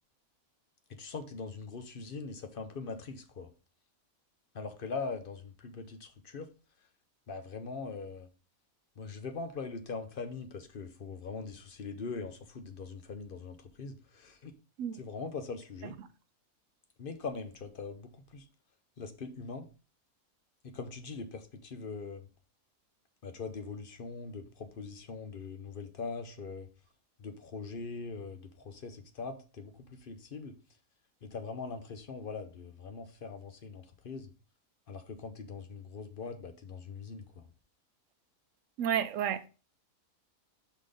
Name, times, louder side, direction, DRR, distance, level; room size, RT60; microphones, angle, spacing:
voice 1, 0.9-3.5 4.5-6.5 7.3-8.3 9.0-14.5 14.9-16.0 17.0-18.5 19.0-19.7 20.6-22.3 23.2-26.7 27.2-30.6 31.2-34.3 34.9-37.5, left 4 dB, 45° left, 0.9 m, -42 dB
voice 2, 38.8-39.5, right 9 dB, 70° right, 1.0 m, -31 dB
5.5 x 4.1 x 5.0 m
omnidirectional pair, 1.5 m